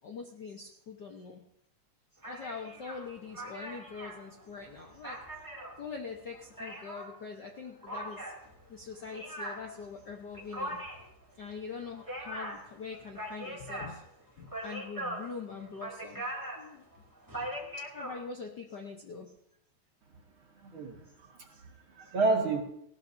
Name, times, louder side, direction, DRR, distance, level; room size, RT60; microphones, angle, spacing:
voice 1, 0.0-1.4 2.1-5.2 5.8-8.3 8.7-10.8 11.4-14.0 14.3-16.8 17.9-19.3 21.5-21.6 22.0-22.1, left 5 dB, 85° left, 2 dB, 0.9 m, -43 dB
sound 1, 2.2-7.2 7.8-18.2, right 1 dB, 5° right, 2.0 m, -41 dB
voice 2, 20.6-22.6, right 3 dB, 45° right, 1 dB, 2.5 m, -31 dB
19.0 x 16.5 x 2.7 m, 0.74 s
omnidirectional pair, 3.7 m